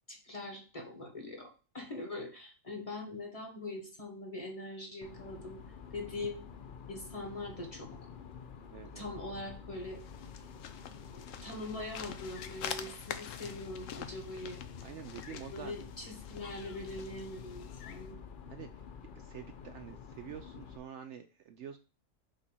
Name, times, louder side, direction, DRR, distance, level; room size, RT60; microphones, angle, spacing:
voice 1, 0.1-5.6 5.9-6.5 6.9-8.1 8.9-10.0 11.1-14.6 15.3-18.2, left 2 dB, 25° left, 2 dB, 1.4 m, -42 dB
sound 1, 5.0-20.8, left 6 dB, 55° left, 0.6 m, -49 dB
voice 2, 8.7-9.1 14.8-15.7 18.5-18.7 19.2-21.8, right 9 dB, 65° right, 8 dB, 0.8 m, -47 dB
sound 2, 9.8-18.1, left 8 dB, 70° left, 1.0 m, -46 dB
5.2 x 4.1 x 5.6 m, 0.35 s
omnidirectional pair, 1.5 m